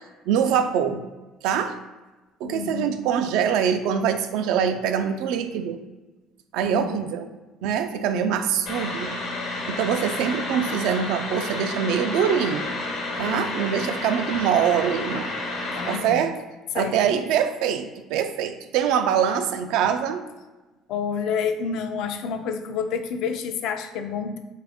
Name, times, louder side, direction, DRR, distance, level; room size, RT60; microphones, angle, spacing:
voice 1, 0.3-1.0 1.4-1.8 2.4-5.8 6.5-7.3 7.6-9.2 9.7-12.7 13.2-15.3 15.9-16.4 16.7-20.2, right 8 dB, 75° right, 8 dB, 0.3 m, -24 dB
voice 2, 2.4-3.0 6.6-7.1 13.2-13.9 15.7-16.3 16.7-17.1 20.9-24.4, left 6 dB, 70° left, 7 dB, 0.4 m, -29 dB
sound 1, 8.7-16.0, left 2 dB, 85° left, 1.0 m, -30 dB
3.3 x 2.4 x 3.5 m, 1.1 s
cardioid pair, 130°, 0 cm